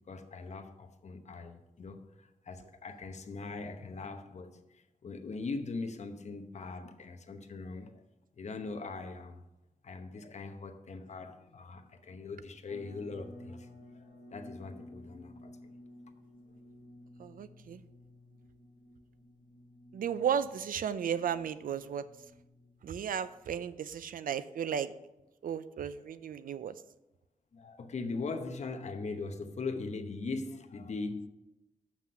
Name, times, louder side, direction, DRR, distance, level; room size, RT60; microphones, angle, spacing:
voice 1, 0.1-8.0 8.4-9.4 9.8-13.7 13.9-14.0 14.3-15.7 16.5-16.6 27.5-31.3, left 3 dB, 55° left, 0.9 m, -41 dB
sound 1, 12.7-23.6, left 1 dB, 35° right, 3.4 m, -54 dB
voice 2, 17.2-17.8 19.9-22.0 22.8-24.9 25.4-26.7, right 8 dB, 85° right, 0.5 m, -34 dB
7.7 x 5.9 x 5.5 m
wide cardioid pair, 130°, 14 cm